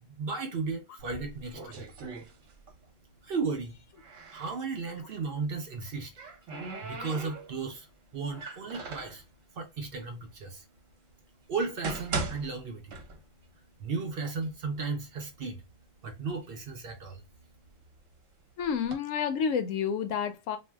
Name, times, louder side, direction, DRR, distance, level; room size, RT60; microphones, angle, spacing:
voice 1, 0.0-1.9 3.2-3.7 4.3-6.1 6.8-7.9 8.1-9.2 9.6-10.6 11.5-12.9 13.8-15.6 16.0-17.2, right 4 dB, 60° right, 0.6 m, -35 dB
sound 1, 1.0-2.9 3.2-4.6 5.7-7.8 8.3-9.2 10.0-10.1 10.8-10.9 11.5-13.5 13.8-13.9 14.6-14.7 15.1-15.8 16.3-18.0 18.6-18.9, right 4 dB, 75° right, 1.1 m, -39 dB
voice 2, 18.6-20.6, left 7 dB, 85° left, 1.0 m, -30 dB
2.6 x 2.1 x 3.3 m
omnidirectional pair, 1.3 m